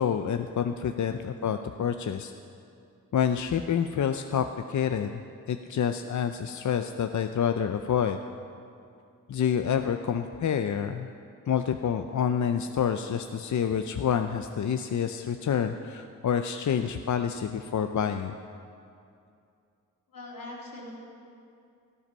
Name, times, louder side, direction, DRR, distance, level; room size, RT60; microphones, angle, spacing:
voice 1, 0.0-2.3 3.1-5.1 5.5-8.2 9.3-11.1 11.5-18.3, left 8 dB, 60° left, 7 dB, 0.6 m, -28 dB
voice 2, 20.1-20.9, left 2 dB, 85° left, -3 dB, 3.0 m, -41 dB
14.0 x 12.0 x 5.5 m, 2.5 s
cardioid pair, 55°, 34 cm